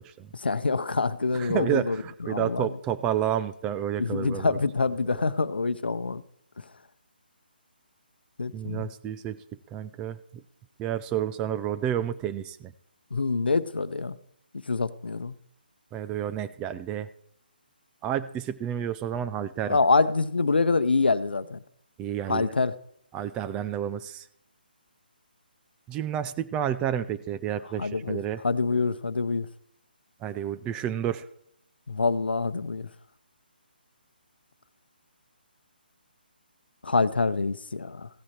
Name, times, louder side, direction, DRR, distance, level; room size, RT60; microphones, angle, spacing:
voice 1, 0.3-2.8 4.0-6.2 6.6-6.7 8.4-8.9 13.1-14.2 14.5-15.3 19.7-21.6 22.3-22.8 27.6-29.5 31.9-32.9 36.8-38.1, left 4 dB, 75° left, 14 dB, 0.7 m, -26 dB
voice 2, 1.4-4.5 8.5-9.4 9.7-10.2 10.8-12.7 15.9-17.1 18.0-19.8 22.0-22.5 23.1-24.3 25.9-28.4 30.2-31.3, right 10 dB, 15° right, 12 dB, 0.4 m, -30 dB
15.5 x 8.5 x 4.4 m, 0.71 s
figure-of-eight pair, 145°, 5 cm